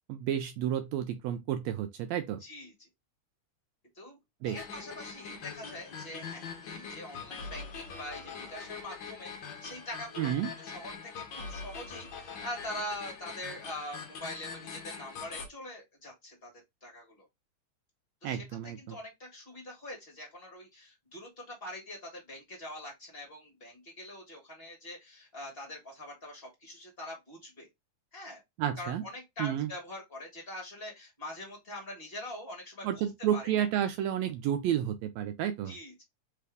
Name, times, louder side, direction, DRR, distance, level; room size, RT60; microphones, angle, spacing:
voice 1, 0.1-2.4 4.4-4.6 10.2-10.5 18.2-19.0 28.6-29.0 29.4-29.7 32.8-35.7, right 10 dB, 80° right, 1.6 m, -31 dB
voice 2, 2.4-2.9 3.9-4.2 4.4-10.3 10.6-16.5 16.8-17.2 18.2-18.4 18.8-27.7 28.1-28.4 28.8-33.0 33.3-33.4 35.7-36.0, left 1 dB, 30° left, 1.2 m, -43 dB
sound 1, 4.4-15.5, left 5 dB, 70° left, 1.1 m, -43 dB
4.1 x 3.4 x 3.3 m
omnidirectional pair, 3.3 m